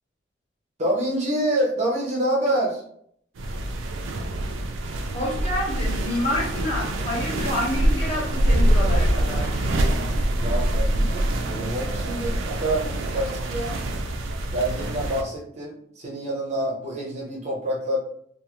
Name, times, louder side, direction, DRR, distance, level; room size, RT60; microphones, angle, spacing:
voice 1, 0.8-2.8 10.4-13.7 14.5-18.0, right 1 dB, 35° right, -2 dB, 0.6 m, -27 dB
sound 1, 3.4-15.2, right 1 dB, 90° right, 0.4 m, -25 dB
voice 2, 5.1-9.5, left 1 dB, 30° left, -5 dB, 0.9 m, -28 dB
2.4 x 2.4 x 2.9 m, 0.66 s
head